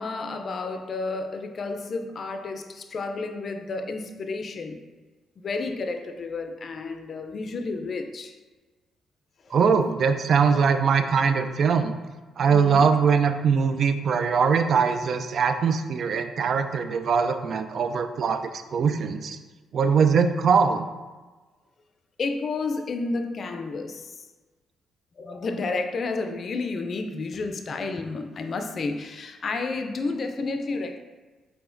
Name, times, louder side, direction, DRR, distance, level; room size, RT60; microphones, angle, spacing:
voice 1, 0.0-4.8 5.4-8.3 9.5-9.6 12.5-12.9 22.2-24.3 25.2-31.0, left 3 dB, 50° left, 6 dB, 0.4 m, -31 dB
voice 2, 9.5-11.9 12.4-19.4 19.7-20.9, right 6 dB, 55° right, 8 dB, 0.3 m, -22 dB
4.8 x 3.4 x 2.5 m, 1.3 s
cardioid pair, 90°, 0 cm